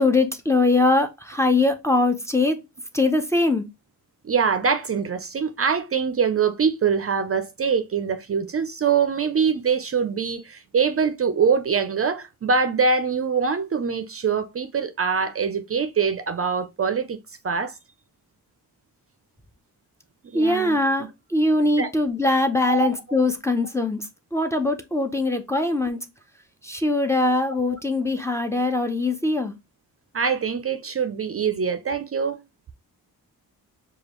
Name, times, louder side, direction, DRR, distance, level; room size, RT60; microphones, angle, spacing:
voice 1, 0.0-2.6 2.9-3.7 20.3-26.0 26.6-29.5, left 2 dB, 10° left, 0.6 m, -22 dB
voice 2, 4.2-17.2 17.4-17.7 20.3-20.8 21.8-21.9 22.7-22.9 27.6-27.8 30.1-32.4, right 6 dB, 40° right, 0.5 m, -23 dB
4.9 x 2.3 x 3.0 m
cardioid pair, 80°, 37 cm